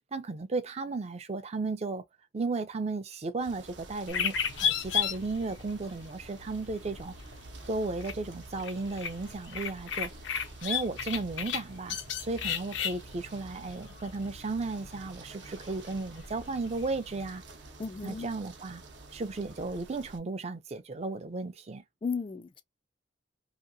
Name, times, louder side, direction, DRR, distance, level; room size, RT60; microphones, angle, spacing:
voice 1, 0.1-2.0 2.3-7.2 7.7-10.1 10.6-17.4 18.0-18.8 19.1-21.8, right 3 dB, 35° right, 0.4 m, -34 dB
sound 1, 3.4-20.2, right 3 dB, 70° right, 0.7 m, -49 dB
sound 2, 4.1-17.4, left 8 dB, 80° left, 0.5 m, -36 dB
voice 2, 17.8-18.3 22.0-22.6, left 5 dB, 30° left, 0.3 m, -34 dB
2.8 x 2.7 x 2.5 m
head